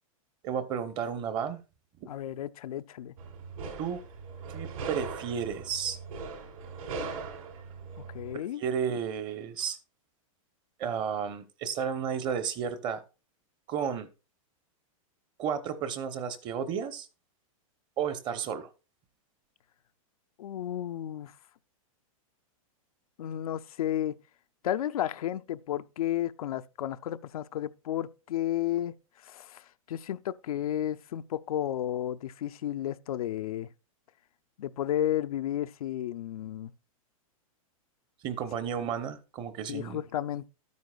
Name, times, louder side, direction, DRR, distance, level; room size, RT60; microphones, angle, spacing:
voice 1, 0.4-1.6 2.0-2.1 3.8-4.0 4.5-6.0 8.3-9.8 10.8-13.0 13.7-14.1 15.4-17.1 18.0-18.7 38.2-40.0, right 7 dB, 25° right, 0.9 m, -32 dB
voice 2, 2.1-3.1 8.0-8.6 20.4-21.3 23.2-24.2 24.6-28.9 29.2-33.7 34.6-36.7 39.7-40.5, left 12 dB, 90° left, 0.6 m, -32 dB
sound 1, 3.2-8.3, right 4 dB, 70° right, 4.5 m, -40 dB
12.5 x 9.5 x 2.3 m
supercardioid pair, 160°, 18 cm